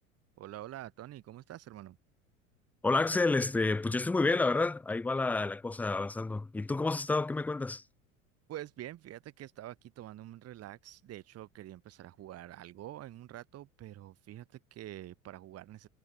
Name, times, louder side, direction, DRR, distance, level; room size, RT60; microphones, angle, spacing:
voice 1, 0.4-2.0 8.5-15.9, right 13 dB, 35° right, 2.1 m, -46 dB
voice 2, 2.8-7.8, left 3 dB, 5° left, 0.4 m, -29 dB
figure-of-eight pair, 75°, 42 cm